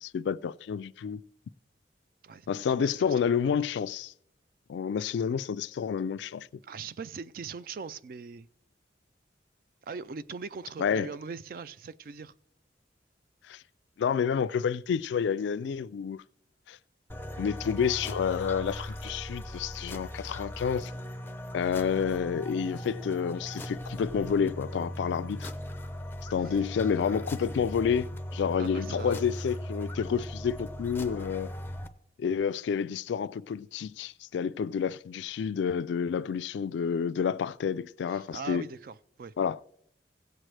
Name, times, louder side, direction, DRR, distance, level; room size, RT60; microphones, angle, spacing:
voice 1, 0.0-1.2 2.5-4.1 4.7-6.5 10.8-11.1 13.5-13.6 14.0-16.2 16.7-16.8 17.4-20.9 21.5-25.5 26.3-31.5 32.2-38.6 39.4-39.6, left 7 dB, 85° left, 0.3 m, -29 dB
voice 2, 2.8-3.3 6.6-8.5 9.8-12.3 28.6-29.2 38.1-39.3, right 5 dB, 50° right, 0.3 m, -41 dB
sound 1, 17.1-31.9, left 1 dB, 10° left, 0.5 m, -39 dB
16.0 x 7.5 x 3.3 m
head